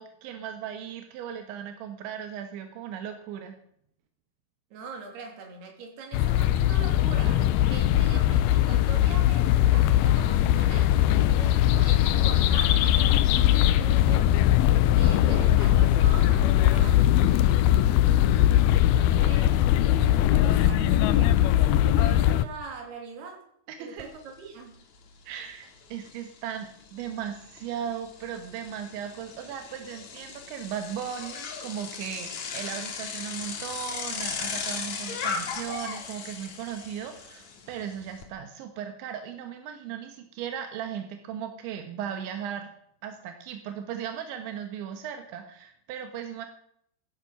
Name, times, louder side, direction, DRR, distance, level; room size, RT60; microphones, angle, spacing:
voice 1, 0.0-3.6 19.1-19.5 23.7-24.1 25.3-42.7 43.0-46.5, right 9 dB, 85° right, 6 dB, 3.6 m, -37 dB
voice 2, 4.7-11.0 11.4-14.5 14.9-17.3 18.9-19.6 20.1-23.4 23.8-24.7, right 4 dB, 65° right, 3 dB, 4.8 m, -42 dB
sound 1, 6.1-22.4, left 12 dB, 85° left, 2.1 m, -21 dB
Bicycle, 24.0-24.1 24.5-38.2, left 6 dB, 50° left, 2.6 m, -37 dB
15.5 x 12.5 x 5.9 m, 0.68 s
omnidirectional pair, 5.1 m